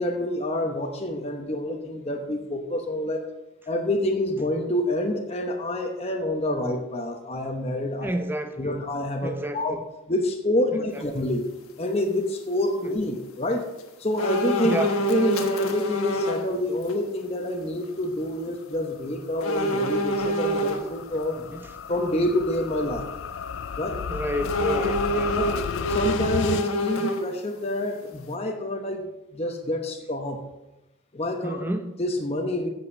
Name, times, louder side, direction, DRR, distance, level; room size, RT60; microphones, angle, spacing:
voice 1, 0.0-3.2 3.7-8.1 8.6-9.8 10.1-11.4 11.8-13.6 14.0-14.7 15.1-21.4 21.9-23.1 23.8-24.0 25.4-29.1 29.3-30.5 31.1-31.6 32.0-32.7, left 1 dB, 30° left, 3 dB, 0.9 m, -27 dB
voice 2, 8.0-8.8 9.2-9.8 10.7-11.0 12.9-13.0 14.6-15.0 21.4-21.7 24.1-25.7 31.4-31.9, right 1 dB, 10° right, 7 dB, 0.7 m, -31 dB
sound 1, 14.2-16.5 16.9-17.0 19.4-20.8 24.4-27.5 27.9-28.0, right 1 dB, 85° left, 1.2 m, -26 dB
sound 2, 18.9-26.7, left 7 dB, 55° left, 0.3 m, -33 dB
8.5 x 7.3 x 6.4 m, 0.98 s
head